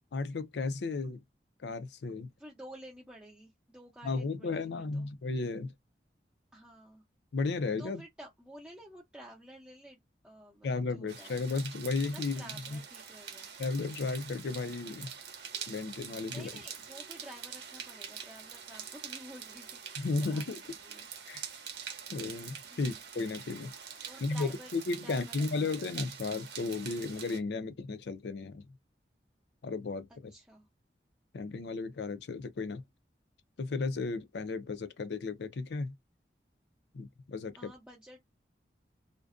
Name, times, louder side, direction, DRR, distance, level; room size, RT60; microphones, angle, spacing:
voice 1, 0.1-1.2 1.6-2.3 4.0-5.7 7.3-8.0 10.6-12.8 13.6-15.1 15.7-16.6 20.0-20.6 21.3-21.4 22.1-23.7 24.2-28.7 29.6-30.3 31.3-32.8 33.6-35.9 36.9-37.7, left 3 dB, 80° left, 0.4 m, -34 dB
voice 2, 2.4-5.1 6.5-7.0 7.8-11.4 12.1-13.5 16.3-21.1 22.7-23.0 24.0-24.7 25.0-25.9 30.1-30.7 37.5-38.3, right 1 dB, 5° right, 0.5 m, -51 dB
sound 1, 11.1-27.4, right 7 dB, 85° right, 0.7 m, -45 dB
2.5 x 2.1 x 2.4 m
head